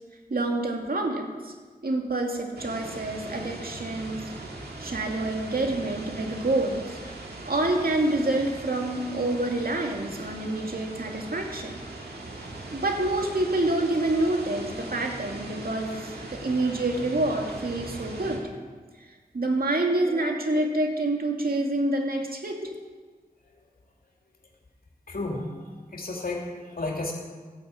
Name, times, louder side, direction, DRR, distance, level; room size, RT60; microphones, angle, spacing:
voice 1, 0.3-1.5 1.8-4.3 4.8-7.0 7.5-11.8 12.7-18.5 19.3-22.7, right 2 dB, 70° right, 2 dB, 2.5 m, -27 dB
sound 1, 2.6-18.4, right 2 dB, 90° right, 2.4 m, -40 dB
voice 2, 25.1-27.1, left 2 dB, 65° left, 0 dB, 2.9 m, -33 dB
13.5 x 9.6 x 8.3 m, 1.4 s
cardioid pair, 45°, 16 cm